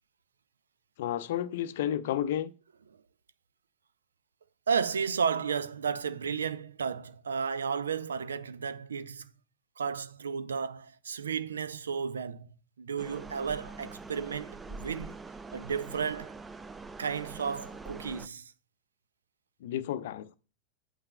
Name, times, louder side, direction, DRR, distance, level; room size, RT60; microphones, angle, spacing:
voice 1, 1.0-2.5 19.6-20.4, left 11 dB, 55° left, 0.5 m, -31 dB
voice 2, 4.7-9.3 9.8-12.5 12.8-15.2 15.5-16.4 17.0-18.5, right 6 dB, 70° right, 0.5 m, -33 dB
sound 1, 13.0-18.3, right 3 dB, 10° right, 0.4 m, -44 dB
8.9 x 8.6 x 2.2 m
figure-of-eight pair, 90°, 0 cm